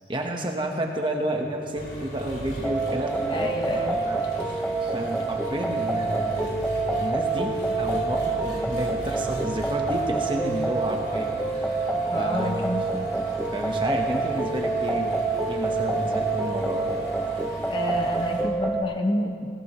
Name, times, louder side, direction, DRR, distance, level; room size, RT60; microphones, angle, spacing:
voice 1, 0.1-6.6 7.0-11.8 12.2-12.8 13.5-15.2 15.5-16.9, right 1 dB, 30° right, 2 dB, 1.3 m, -31 dB
Engine, 1.7-18.4, equal, 80° left, 3.6 m, -39 dB
sound 1, 2.6-18.8, right 3 dB, 5° left, 0.5 m, -27 dB
voice 2, 3.3-4.0 12.0-12.9 17.7-19.5, left 1 dB, 25° left, 3 dB, 0.9 m, -28 dB
18.0 x 18.0 x 3.2 m, 2.4 s
head